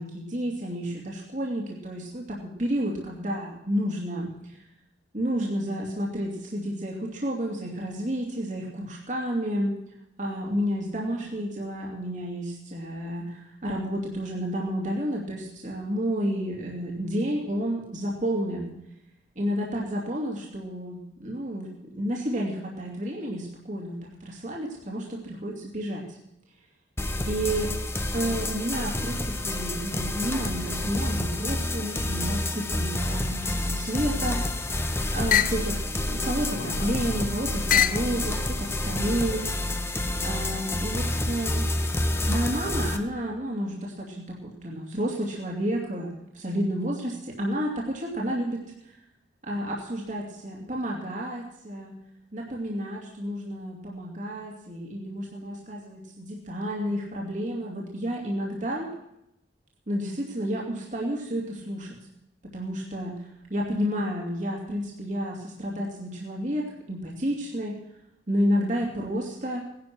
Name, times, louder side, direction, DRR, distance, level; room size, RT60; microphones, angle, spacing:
voice 1, 0.0-4.6 5.1-9.7 10.2-18.7 19.4-21.7 21.9-26.2 27.3-27.7 28.1-34.8 35.1-39.5 40.2-41.9 42.3-46.1 46.3-49.0 49.4-51.9 52.3-58.9 59.9-62.0 62.5-67.8 68.3-69.6, equal, 40° right, -1 dB, 2.7 m, -31 dB
sound 1, 27.0-43.0, left 1 dB, 15° left, 1.1 m, -29 dB
sound 2, 34.3-34.7 35.3-35.6 36.4-37.1 37.7-38.1 38.9-39.6, left 10 dB, 45° left, 0.6 m, -27 dB
17.5 x 11.5 x 6.2 m, 0.82 s
head